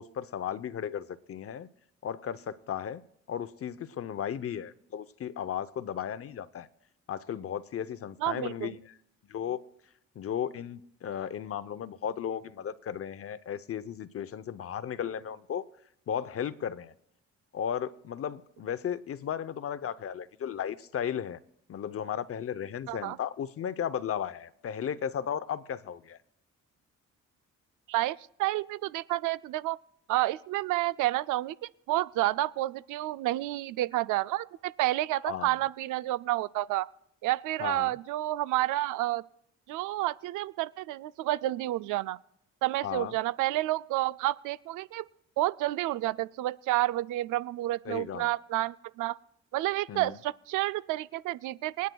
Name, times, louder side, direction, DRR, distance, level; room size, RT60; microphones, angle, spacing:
voice 1, 0.0-1.7 2.0-3.0 3.3-6.7 7.1-8.9 9.3-9.6 10.2-15.6 16.1-16.9 17.5-21.4 21.7-26.2 35.3-35.5 37.6-37.9 42.8-43.1 47.9-48.3 49.9-50.2, left 9 dB, 50° left, 0.7 m, -35 dB
voice 2, 8.2-8.7 22.9-23.2 27.9-29.8 30.1-31.6 31.9-36.9 37.2-39.2 39.7-42.2 42.6-45.0 45.4-49.2 49.5-51.9, right 16 dB, 85° right, 0.5 m, -30 dB
27.0 x 9.4 x 2.3 m
cardioid pair, 90°, 30 cm